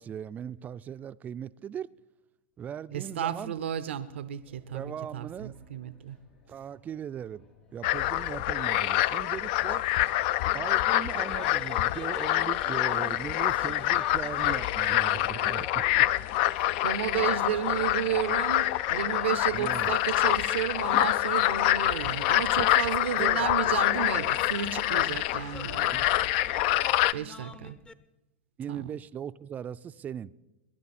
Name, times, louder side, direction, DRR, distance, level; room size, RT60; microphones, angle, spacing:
voice 1, 0.0-1.9 2.6-3.5 4.7-5.6 6.5-7.5 7.7-9.8 10.5-16.2 19.5-20.0 23.2-23.5 25.9-27.1 28.6-30.3, right 9 dB, 25° right, 0.4 m, -39 dB
voice 2, 2.9-6.2 16.8-25.9 27.1-27.8 28.7-28.9, right 10 dB, 80° right, 0.6 m, -32 dB
sound 1, 4.4-10.6, left 2 dB, 85° left, 3.2 m, -60 dB
sound 2, 7.8-27.1, left 15 dB, 60° left, 0.4 m, -26 dB
sound 3, 11.0-27.9, left 3 dB, 15° left, 0.6 m, -47 dB
22.5 x 10.5 x 4.2 m
hypercardioid pair, 110°, 6 cm